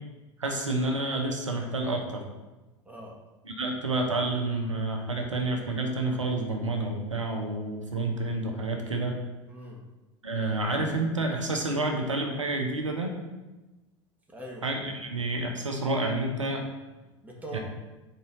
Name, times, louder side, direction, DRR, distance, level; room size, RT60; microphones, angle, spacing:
voice 1, 0.4-2.2 3.5-9.2 10.2-13.1 14.6-16.7 17.5-17.6, right 2 dB, 85° right, 2 dB, 0.9 m, -29 dB
voice 2, 9.5-9.8 14.3-14.6 17.0-17.6, right 1 dB, 10° right, -2 dB, 1.5 m, -42 dB
4.5 x 4.1 x 5.1 m, 1.1 s
figure-of-eight pair, 75°, 16 cm